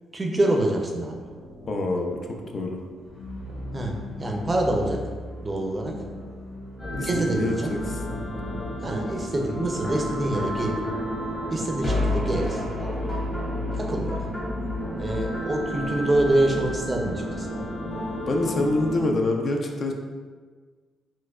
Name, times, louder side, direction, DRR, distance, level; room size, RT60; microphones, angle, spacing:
voice 1, 0.1-1.2 3.7-5.0 5.4-6.0 6.9-7.7 8.8-10.8 11.5-13.0 13.7-14.3 15.0-17.5, right 1 dB, 25° right, 1 dB, 0.5 m, -26 dB
sound 1, 1.2-19.3, right 1 dB, 90° right, 0.8 m, -47 dB
voice 2, 1.7-2.2 2.5-2.8 6.9-8.0 18.3-19.9, left 2 dB, 45° left, 2 dB, 0.4 m, -26 dB
sound 2, 3.0-13.0, left 1 dB, 85° left, 1.0 m, -41 dB
sound 3, 6.8-19.0, left 1 dB, 30° left, 1.0 m, -30 dB
4.4 x 2.1 x 2.3 m, 1.5 s
cardioid pair, 90°, 0 cm